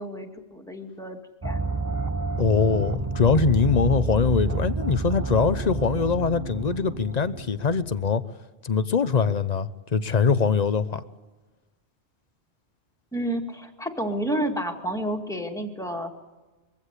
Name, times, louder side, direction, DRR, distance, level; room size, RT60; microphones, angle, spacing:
voice 1, 0.0-1.6 13.1-16.1, right 1 dB, 5° left, 2 dB, 2.2 m, -30 dB
sound 1, 1.4-8.1, right 3 dB, 20° right, 0.8 m, -29 dB
voice 2, 2.4-8.2 8.6-11.0, left 5 dB, 40° left, 14 dB, 0.8 m, -23 dB
23.0 x 16.0 x 8.2 m, 1.2 s
omnidirectional pair, 1.1 m